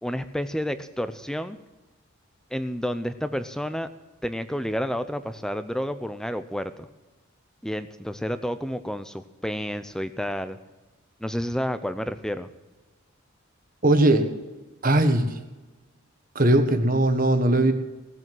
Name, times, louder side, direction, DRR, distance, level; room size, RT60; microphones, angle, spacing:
voice 1, 0.0-1.6 2.5-3.9 4.2-6.9 7.6-10.6 11.2-12.5, equal, 5° left, 11 dB, 0.6 m, -30 dB
voice 2, 13.8-14.3 14.8-15.2 16.3-17.7, right 1 dB, 40° right, 6 dB, 1.4 m, -19 dB
18.0 x 7.8 x 7.7 m, 1.1 s
head